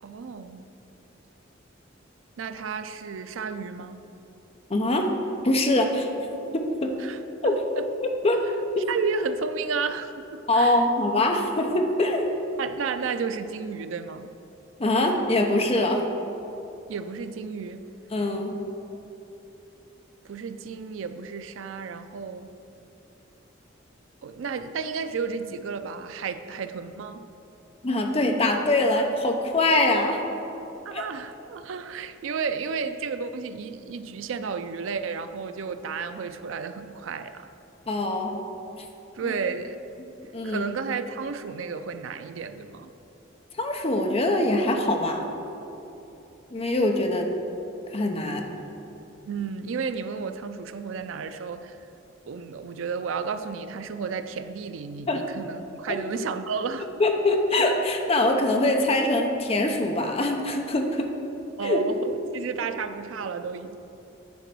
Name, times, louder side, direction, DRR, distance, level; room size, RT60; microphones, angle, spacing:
voice 1, 0.0-0.6 2.4-4.0 7.0-7.9 8.9-10.9 12.6-14.3 16.9-17.8 20.2-22.5 24.2-27.3 30.8-37.5 39.1-39.8 40.4-42.9 49.2-51.8 52.2-57.2 61.6-63.8, right 5 dB, 90° right, 10 dB, 0.4 m, -32 dB
voice 2, 4.7-5.1 5.4-6.1 6.5-6.9 7.4-7.6 8.0-8.4 10.5-12.4 14.8-16.0 18.1-18.5 27.8-30.2 30.9-31.0 37.9-38.4 39.2-39.3 40.3-40.6 43.6-45.3 46.5-47.3 47.9-48.5 55.1-55.2 57.0-61.1 61.6-61.8, left 2 dB, 30° left, 3 dB, 0.7 m, -23 dB
9.6 x 4.0 x 6.0 m, 2.9 s
head